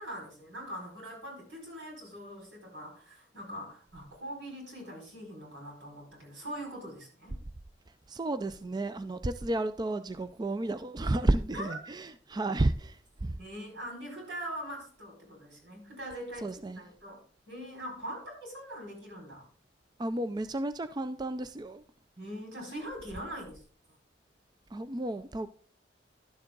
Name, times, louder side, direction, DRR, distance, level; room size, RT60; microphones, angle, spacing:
voice 1, 0.0-7.4 11.5-11.8 13.4-19.5 22.2-23.6, equal, 85° right, 1 dB, 5.2 m, -42 dB
voice 2, 8.1-13.3 16.4-16.8 20.0-21.8 24.7-25.5, right 2 dB, 25° right, 11 dB, 0.4 m, -32 dB
11.5 x 7.1 x 3.8 m, 0.42 s
head